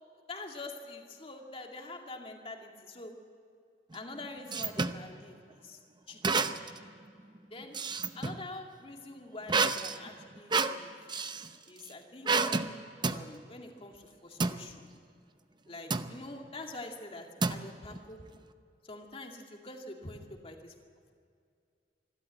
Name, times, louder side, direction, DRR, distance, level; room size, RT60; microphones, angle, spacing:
voice 1, 0.3-3.2 3.9-5.8 6.1-6.5 7.5-7.7 8.1-11.0 11.7-14.9 15.7-18.2 18.8-20.7, left 2 dB, 35° left, 2 dB, 2.2 m, -45 dB
sound 1, 3.9-5.0 6.2-6.8 7.2-8.4 9.5-11.5 12.3-12.7 13.0-13.3 14.4-14.6 15.9-16.2 17.4-18.0, right 4 dB, 25° right, 0.7 m, -30 dB
25.0 x 12.5 x 9.0 m, 2.3 s
head